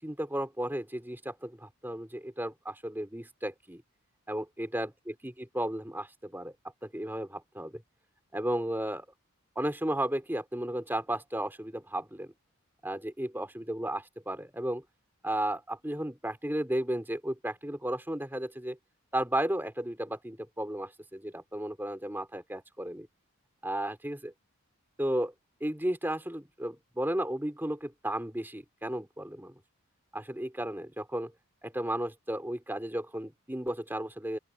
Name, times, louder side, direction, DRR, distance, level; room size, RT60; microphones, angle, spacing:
voice 1, 0.0-3.8 4.3-4.9 5.2-6.5 6.8-7.8 8.3-9.0 9.5-12.3 12.8-14.8 15.2-18.8 19.1-23.1 23.6-24.3 25.0-25.3 25.6-29.5 30.1-31.3 31.6-34.4, right 1 dB, 10° right, 3.1 m, -34 dB
open air
head